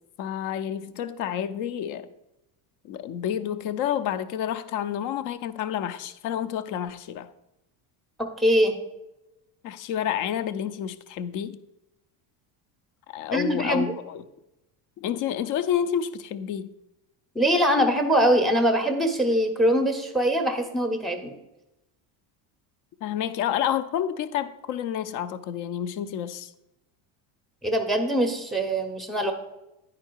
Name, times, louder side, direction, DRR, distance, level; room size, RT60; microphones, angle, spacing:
voice 1, 0.2-2.1 2.8-7.3 9.6-11.6 13.1-14.2 15.0-16.7 23.0-26.5, left 9 dB, 45° left, 0.5 m, -29 dB
voice 2, 8.4-8.8 13.3-13.9 17.3-21.3 27.6-29.3, equal, ahead, 0.6 m, -23 dB
10.0 x 4.9 x 4.5 m
cardioid pair, 160°, 43 cm